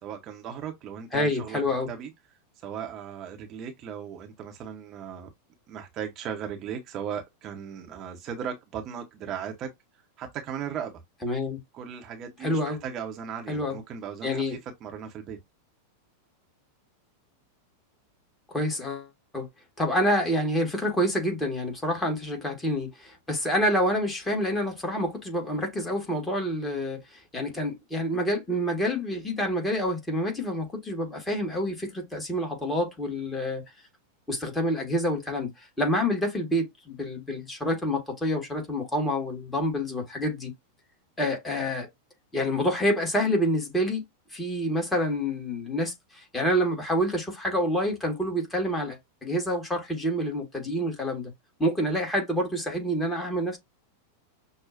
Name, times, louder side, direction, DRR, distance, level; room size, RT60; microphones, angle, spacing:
voice 1, 0.0-1.6 1.9-2.1 2.6-5.3 5.7-9.7 10.2-11.0 11.7-15.4, right 8 dB, 35° right, 0.9 m, -37 dB
voice 2, 1.1-1.9 11.2-11.6 12.4-12.8 13.5-13.8 14.2-14.6 18.5-19.1 19.3-19.5 19.8-27.0 27.3-33.6 34.3-40.5 41.2-41.9 42.3-44.0 44.3-51.3 51.6-53.6, equal, 10° left, 1.6 m, -27 dB
6.1 x 2.3 x 2.5 m
figure-of-eight pair, 90°, 0 cm